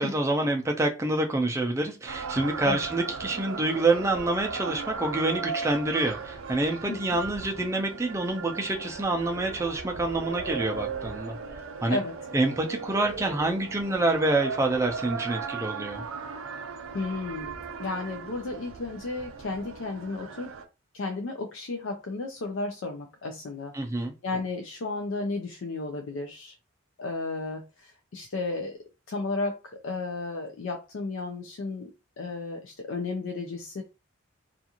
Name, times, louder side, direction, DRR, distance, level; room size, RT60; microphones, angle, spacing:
voice 1, 0.0-11.4 11.8-12.0 12.3-16.0 23.7-24.1, right 2 dB, 15° right, 3 dB, 0.4 m, -27 dB
sound 1, 2.1-20.6, right 5 dB, 80° right, 0.4 m, -37 dB
voice 2, 6.9-7.2 11.9-12.1 16.9-20.6 20.9-23.7 24.2-26.6 27.0-28.8 29.1-31.9 32.2-33.8, left 3 dB, 70° left, 3 dB, 0.4 m, -33 dB
2.4 x 2.4 x 2.8 m, 0.29 s
head